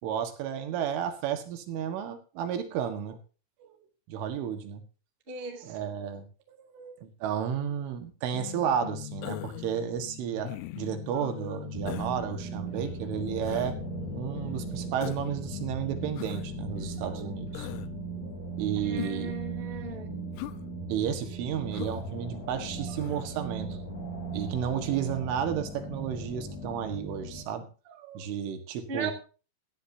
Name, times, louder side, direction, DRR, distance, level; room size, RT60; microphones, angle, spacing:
voice 1, 0.0-3.2 3.6-3.7 4.1-4.8 5.4-13.8 14.1-17.7 18.2-19.3 20.9-23.9 24.3-29.1, right 8 dB, 75° right, 7 dB, 4.1 m, -32 dB
voice 2, 5.3-5.8 18.7-20.1 28.9-29.1, right 4 dB, 35° right, 3 dB, 0.8 m, -37 dB
sound 1, 8.3-17.9, left 11 dB, 75° left, 1.6 m, -43 dB
Human voice, 9.2-9.7 10.4-10.9 11.9-12.2 13.4-13.7 15.0-15.3 16.2-16.5 17.5-17.9 19.0-19.3 20.4-20.6 21.7-22.0 23.0-23.3, left 17 dB, 90° left, 3.5 m, -39 dB
sound 2, 11.7-27.4, right 3 dB, 30° left, 8.0 m, -38 dB
18.0 x 13.5 x 2.8 m, 0.35 s
omnidirectional pair, 5.9 m